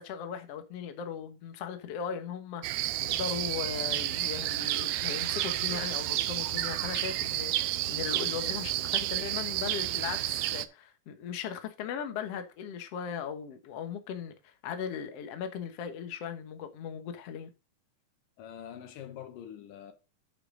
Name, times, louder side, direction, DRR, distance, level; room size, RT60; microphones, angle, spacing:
voice 1, 0.0-17.5, left 7 dB, 60° left, 2.0 m, -38 dB
sound 1, 2.6-10.7, right 15 dB, 80° right, 1.7 m, -31 dB
voice 2, 18.4-19.9, left 9 dB, 85° left, 2.7 m, -44 dB
9.6 x 6.0 x 3.8 m
omnidirectional pair, 3.7 m